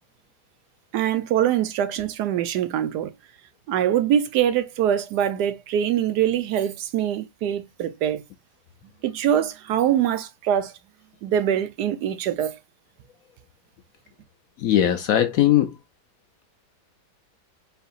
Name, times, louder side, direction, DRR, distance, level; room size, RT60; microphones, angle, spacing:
voice 1, 0.9-3.1 3.7-8.2 9.0-10.7 11.2-12.5, right 10 dB, 75° right, 1.2 m, -23 dB
voice 2, 14.6-15.7, left 12 dB, 70° left, 0.9 m, -19 dB
4.6 x 3.4 x 2.4 m
omnidirectional pair, 1.9 m